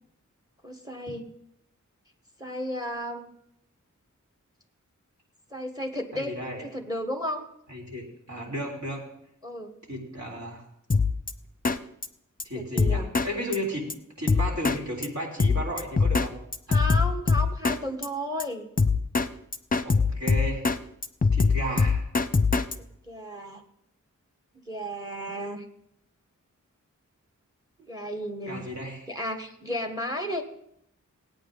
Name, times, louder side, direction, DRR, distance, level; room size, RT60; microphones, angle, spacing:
voice 1, 0.6-1.3 2.4-3.3 5.5-6.3 6.6-7.5 9.4-9.8 12.5-13.1 16.7-18.7 22.8-23.6 24.5-25.6 27.9-28.6 29.1-30.4, equal, 10° right, 5 dB, 1.4 m, -33 dB
voice 2, 6.1-6.6 7.7-9.1 9.9-10.6 12.4-16.4 16.7-16.8 19.8-20.7 21.3-22.0 28.5-29.1, equal, 60° right, -2 dB, 3.8 m, -34 dB
Drum kit, 10.9-11.3 11.7-11.8 12.0-12.1 12.4-12.5 12.8-13.3 13.5-13.6 13.9-14.0 14.3-14.8 15.0-15.1 15.4-16.3 16.5-17.8 18.0-18.1 18.4-18.5 18.8-19.3 19.5-20.8 21.0-22.8, left 4 dB, 30° left, 0.8 m, -22 dB
18.5 x 9.0 x 3.9 m, 0.76 s
wide cardioid pair, 60°, 31 cm